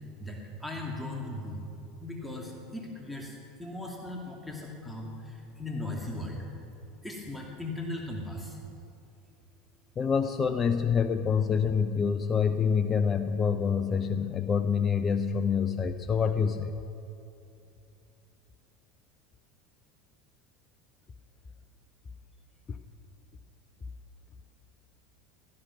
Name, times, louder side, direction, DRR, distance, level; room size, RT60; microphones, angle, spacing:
voice 1, 0.2-1.6 2.0-6.4 7.0-8.6, left 2 dB, ahead, -1 dB, 2.4 m, -38 dB
voice 2, 10.0-16.7 22.7-22.8, left 6 dB, 30° left, 9 dB, 0.6 m, -26 dB
16.5 x 13.5 x 6.1 m, 2.7 s
hypercardioid pair, 80°, 0 cm